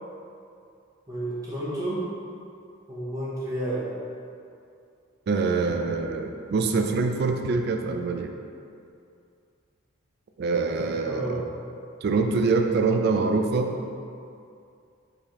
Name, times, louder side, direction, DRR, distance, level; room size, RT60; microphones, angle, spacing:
voice 1, 1.1-2.0 2.9-3.9 11.1-11.4, right 1 dB, 15° right, -8 dB, 0.9 m, -31 dB
voice 2, 5.3-8.3 10.4-11.5 12.0-13.7, right 4 dB, 50° right, 5 dB, 0.3 m, -24 dB
4.4 x 3.4 x 3.0 m, 2.5 s
head